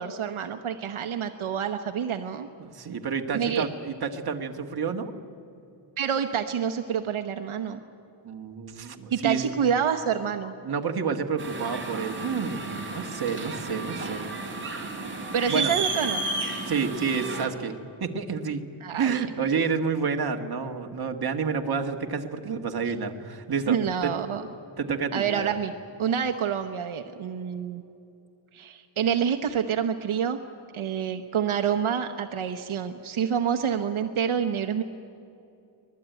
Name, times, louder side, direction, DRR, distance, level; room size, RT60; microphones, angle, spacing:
voice 1, 0.0-2.5 3.3-3.7 6.0-7.8 9.1-10.5 15.3-16.2 18.8-19.2 23.7-24.5 25.1-25.7 26.0-27.8 28.5-30.4 30.7-34.8, right 8 dB, 75° right, 6 dB, 1.1 m, -27 dB
voice 2, 2.6-5.1 8.2-9.5 10.6-14.3 15.5-15.8 16.7-18.6 19.0-24.1 24.5-25.5, right 5 dB, 50° right, 3 dB, 1.6 m, -29 dB
sound 1, 11.4-17.4, right 3 dB, 25° right, 3.2 m, -32 dB
24.5 x 20.0 x 9.2 m, 2.7 s
wide cardioid pair, 170°, 50 cm